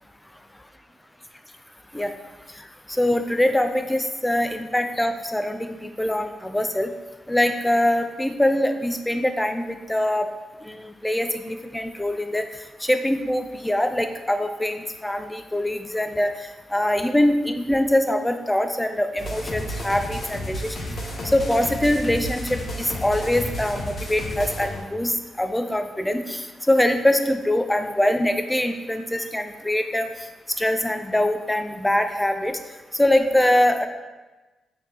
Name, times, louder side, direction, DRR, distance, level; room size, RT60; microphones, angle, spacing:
voice 1, 2.5-6.9 7.3-10.3 10.6-12.5 12.8-20.8 21.2-30.3 30.6-32.6 32.9-33.9, left 1 dB, 10° left, 7 dB, 0.4 m, -23 dB
sound 1, 19.2-24.8, equal, 55° left, 0.8 m, -32 dB
3.9 x 3.4 x 2.9 m, 1.2 s
supercardioid pair, 45°, 0 cm